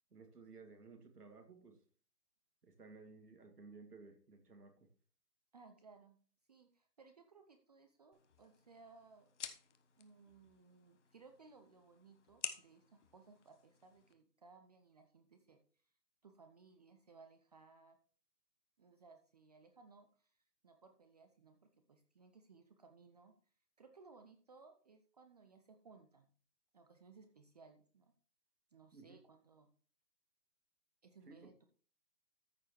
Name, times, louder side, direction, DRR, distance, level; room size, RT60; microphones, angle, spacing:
voice 1, 0.1-1.8 2.6-4.9 28.9-29.2 31.3-31.5, right 4 dB, 70° right, 5 dB, 2.3 m, -57 dB
voice 2, 5.5-6.2 6.5-9.3 10.0-15.6 16.2-18.0 18.8-20.4 20.6-23.3 23.8-26.3 26.7-28.1 28.7-29.7 31.0-31.6, right 4 dB, 25° right, 6 dB, 0.6 m, -62 dB
Bic Lighter sound, 8.1-14.1, left 8 dB, 45° left, 1.2 m, -51 dB
14.0 x 6.5 x 3.1 m, 0.43 s
figure-of-eight pair, 130°, 48 cm